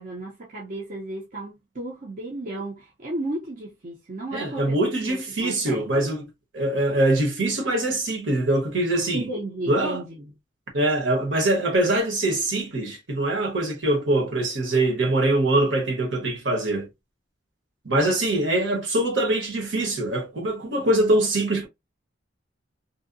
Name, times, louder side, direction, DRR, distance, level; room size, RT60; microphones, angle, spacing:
voice 1, 0.0-6.1 9.1-10.3, right 1 dB, 45° right, 0.6 m, -34 dB
voice 2, 4.3-6.2 6.5-9.3 9.7-10.0 10.7-16.9 17.8-21.7, right 1 dB, 70° right, 1.0 m, -23 dB
2.7 x 2.1 x 2.5 m
head